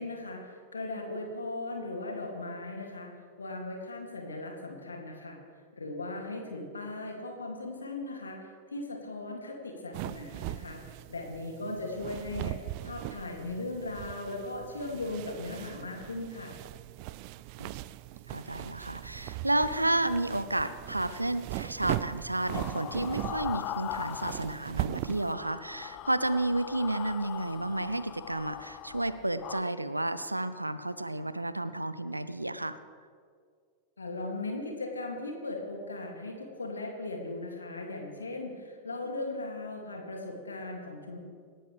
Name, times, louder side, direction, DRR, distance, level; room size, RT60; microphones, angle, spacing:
voice 1, 0.0-3.1 3.4-5.4 5.7-16.5 34.0-41.2, left 2 dB, 75° left, 1 dB, 2.5 m, -38 dB
sound 1, 9.9-25.3, right 16 dB, 45° right, 0.4 m, -39 dB
voice 2, 18.3-32.8, right 1 dB, 85° right, 13 dB, 0.7 m, -31 dB
sound 2, 22.5-24.8 25.0-29.6, left 15 dB, 40° left, 0.3 m, -41 dB
26.5 x 12.0 x 3.4 m, 2.1 s
figure-of-eight pair, 90°, 0 cm